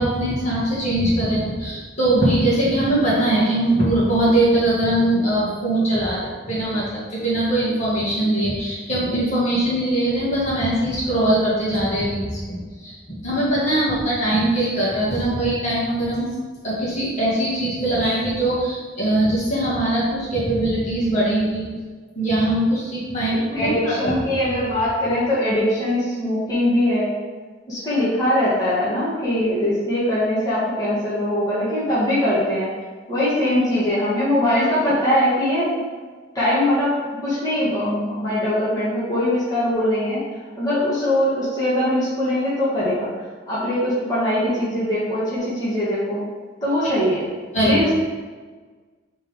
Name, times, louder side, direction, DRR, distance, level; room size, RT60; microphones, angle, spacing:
voice 1, 0.0-16.3 16.6-21.7 22.2-24.1 47.5-47.8, right 1 dB, 35° left, -8 dB, 1.9 m, -21 dB
voice 2, 23.2-27.1 27.7-32.7 33.1-35.7 36.3-40.2 40.6-43.1 43.5-46.2 46.6-47.3 47.6-47.9, left 1 dB, 20° left, -11 dB, 1.7 m, -21 dB
7.9 x 3.6 x 3.7 m, 1.4 s
head